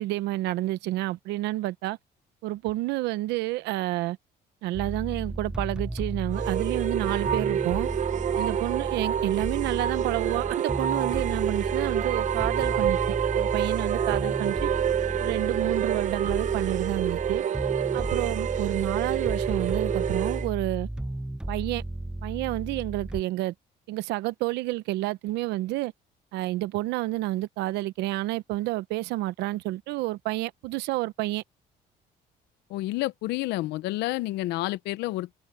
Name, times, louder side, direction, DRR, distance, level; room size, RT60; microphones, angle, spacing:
voice 1, 0.0-2.0 2.4-4.2 4.6-7.9 8.4-14.7 15.2-17.4 17.9-20.9 21.5-21.8 22.2-23.5 23.9-25.9 26.3-31.4, right 17 dB, 90° right, 0.9 m, -29 dB
sound 1, 4.7-23.2, right 1 dB, 5° right, 0.8 m, -34 dB
sound 2, 6.3-20.5, right 9 dB, 45° right, 0.7 m, -28 dB
voice 2, 32.7-35.3, left 17 dB, 85° left, 0.8 m, -29 dB
cardioid pair, 110°, 17 cm